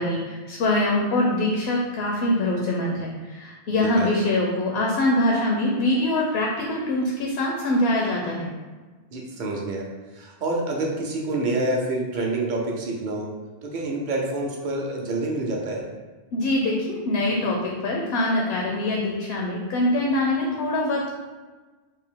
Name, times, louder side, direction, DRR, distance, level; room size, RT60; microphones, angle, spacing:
voice 1, 0.0-8.5 16.3-21.1, left 1 dB, 70° left, -1 dB, 0.8 m, -24 dB
voice 2, 9.1-9.9 10.1-13.3 13.6-15.8, right 2 dB, 50° right, -1 dB, 0.7 m, -27 dB
3.5 x 2.5 x 3.7 m, 1.3 s
omnidirectional pair, 1.1 m